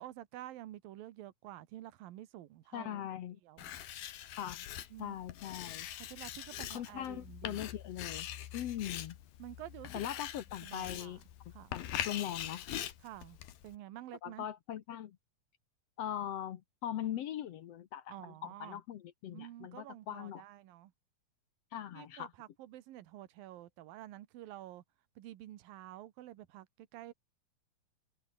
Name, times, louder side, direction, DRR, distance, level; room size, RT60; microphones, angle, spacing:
voice 1, 0.0-3.0 3.4-3.7 4.9-5.2 6.0-7.6 9.4-10.0 10.6-11.2 11.5-11.7 13.0-13.4 13.6-14.5 18.1-18.8 19.3-20.9 21.9-24.8 25.2-27.1, right 14 dB, 80° right, 3.0 m, -49 dB
voice 2, 2.7-3.4 4.3-4.7 5.0-5.9 6.7-8.3 8.5-9.2 9.9-11.2 11.7-12.6 14.2-15.2 16.0-20.4 21.7-22.3, left 10 dB, 65° left, 1.6 m, -40 dB
Writing, 3.6-13.8, left 11 dB, 90° left, 3.5 m, -43 dB
omnidirectional pair, 4.0 m